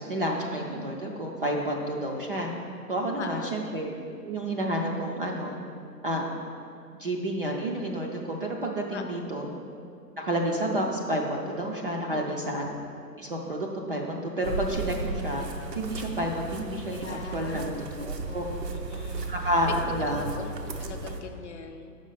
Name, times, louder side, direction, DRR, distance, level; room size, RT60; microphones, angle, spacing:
voice 1, 0.0-2.5 2.9-3.9 4.2-5.6 6.0-6.3 7.0-9.5 10.2-12.7 13.2-15.4 15.7-18.5 19.2-20.3, right 1 dB, 35° right, 0 dB, 0.4 m, -30 dB
voice 2, 3.2-3.6 8.9-9.3 12.1-12.4 17.0-19.7 20.1-20.5 20.8-21.9, left 6 dB, 45° left, 6 dB, 0.5 m, -41 dB
sound 1, 14.4-21.2, right 3 dB, 85° right, 0.8 m, -35 dB
6.1 x 5.1 x 5.5 m, 2.5 s
hypercardioid pair, 140°, 48 cm